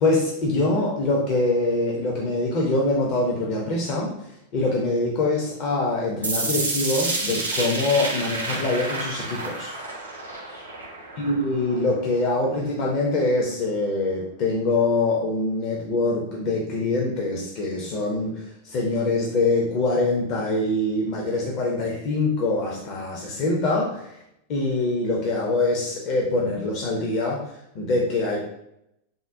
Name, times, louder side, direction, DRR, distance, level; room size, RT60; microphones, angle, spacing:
voice 1, 0.0-4.1 4.5-9.7 11.2-24.1 24.5-27.4 27.7-28.4, left 2 dB, 40° left, -2 dB, 0.5 m, -24 dB
sound 1, 6.2-12.2, right 2 dB, 80° right, 0.5 m, -29 dB
3.6 x 2.1 x 2.5 m, 0.80 s
figure-of-eight pair, 90°, 0 cm